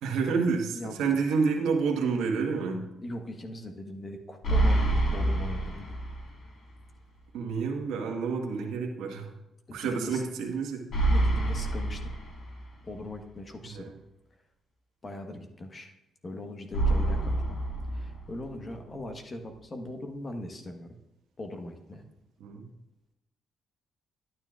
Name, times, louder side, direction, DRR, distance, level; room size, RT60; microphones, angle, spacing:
voice 1, 0.0-2.9 7.3-9.3 9.7-10.9 13.6-14.0 22.4-22.7, right 5 dB, 85° right, 1 dB, 1.4 m, -29 dB
voice 2, 3.0-5.9 9.7-10.2 11.1-12.1 12.8-13.9 15.0-15.9 16.2-17.6 17.9-20.9 21.4-22.0, left 1 dB, 35° left, 5 dB, 1.3 m, -40 dB
sound 1, 4.4-6.5 6.8-6.9 10.9-12.9 16.7-18.7, right 2 dB, 60° left, 2.0 m, -27 dB
11.5 x 9.5 x 2.4 m, 0.91 s
cardioid pair, 90°, 0 cm